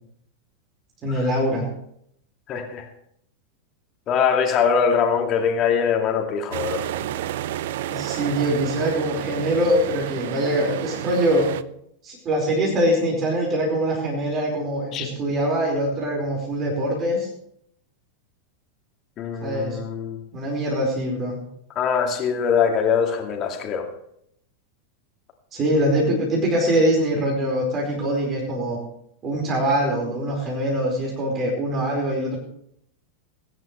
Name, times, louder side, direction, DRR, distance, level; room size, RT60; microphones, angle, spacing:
voice 1, 1.0-1.6 7.9-11.5 12.0-17.3 19.4-19.8 20.3-21.4 25.5-28.8 29.2-32.4, equal, 30° right, -1 dB, 4.9 m, -23 dB
voice 2, 2.5-2.9 4.1-6.8 14.9-15.1 19.2-20.2 21.8-23.9, left 6 dB, 30° left, 2 dB, 2.3 m, -22 dB
sound 1, 6.5-11.6, right 12 dB, 55° right, 0.5 m, -30 dB
21.5 x 10.5 x 3.3 m, 0.71 s
figure-of-eight pair, 90°, 0 cm